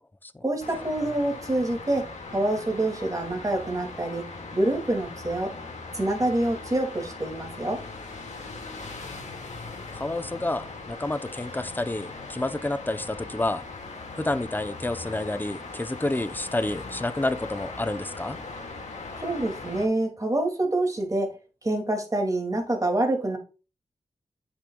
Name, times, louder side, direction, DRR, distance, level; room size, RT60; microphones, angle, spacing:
voice 1, 0.4-4.2 4.5-5.5 5.9-7.8 19.2-21.4 21.6-23.4, right 1 dB, 25° right, 2.3 m, -26 dB
sound 1, 0.6-19.9, left 3 dB, 70° left, 2.0 m, -40 dB
voice 2, 9.9-13.6 14.2-18.4, left 2 dB, 15° left, 0.7 m, -29 dB
8.1 x 7.1 x 2.3 m
cardioid pair, 60°, 12 cm